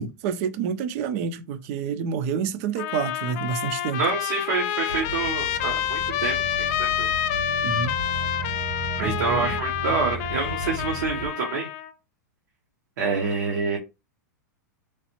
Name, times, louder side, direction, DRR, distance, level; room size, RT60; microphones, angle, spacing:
voice 1, 0.0-4.0 7.6-8.0 9.0-9.6, right 7 dB, 50° right, 0.5 m, -28 dB
Trumpet, 2.8-11.9, left 10 dB, 50° left, 0.4 m, -28 dB
voice 2, 4.0-6.4 6.8-7.1 9.0-11.7 13.0-13.8, right 5 dB, 70° right, 0.9 m, -27 dB
sound 1, 4.9-11.3, right 2 dB, 90° right, 1.6 m, -35 dB
3.2 x 2.4 x 2.8 m
hypercardioid pair, 120°, 10 cm